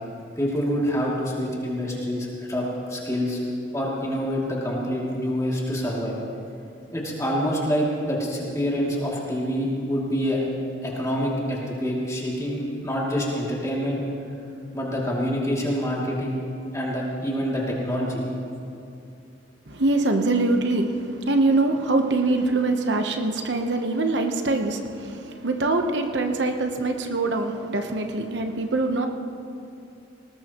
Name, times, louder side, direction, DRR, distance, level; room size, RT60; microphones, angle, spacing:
voice 1, 0.4-3.4 3.7-6.2 6.9-10.4 10.8-14.0 14.7-16.4 16.7-18.3, equal, 15° left, -4 dB, 2.6 m, -26 dB
voice 2, 19.7-29.1, right 2 dB, 75° right, 5 dB, 1.0 m, -24 dB
19.5 x 18.5 x 3.0 m, 2.6 s
head